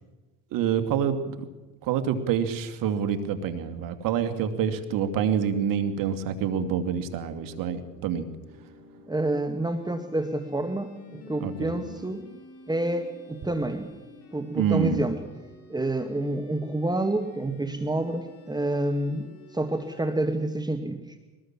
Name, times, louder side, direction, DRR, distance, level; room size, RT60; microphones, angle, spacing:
voice 1, 0.5-1.5 1.8-8.2 11.4-11.7 14.5-15.0, right 8 dB, 75° right, 9 dB, 2.6 m, -27 dB
sound 1, 4.7-20.5, left 3 dB, 45° left, 7.7 m, -50 dB
voice 2, 9.1-12.2 12.7-13.9 14.3-15.2 15.7-21.0, right 1 dB, 10° right, 7 dB, 2.0 m, -28 dB
23.5 x 19.0 x 7.5 m, 1.2 s
supercardioid pair, 75°, 34 cm